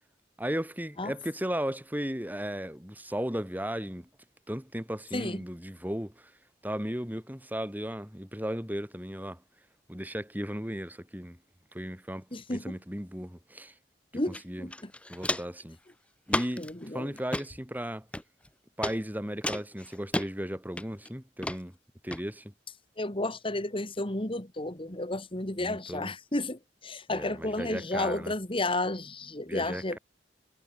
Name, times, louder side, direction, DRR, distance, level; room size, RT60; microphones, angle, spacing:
voice 1, 0.4-4.1 4.5-6.3 6.6-9.4 9.9-11.4 11.7-13.7 14.4-14.7 15.1-15.8 16.3-16.7 16.9-18.0 18.8-21.7 22.0-22.5 25.6-26.1 27.1-28.3 29.5-30.0, equal, 10° right, 6.4 m, -35 dB
voice 2, 12.3-12.8 14.1-14.9 16.6-17.1 23.0-30.0, left 2 dB, 30° left, 2.5 m, -32 dB
Walk footsteps, 14.3-14.4 14.7-15.6 16.3-16.7 17.2-17.5 18.1-18.5 18.8-19.0 19.4-20.3 20.8-21.1 21.4-21.6 22.1-22.2, left 1 dB, 5° left, 1.0 m, -32 dB
head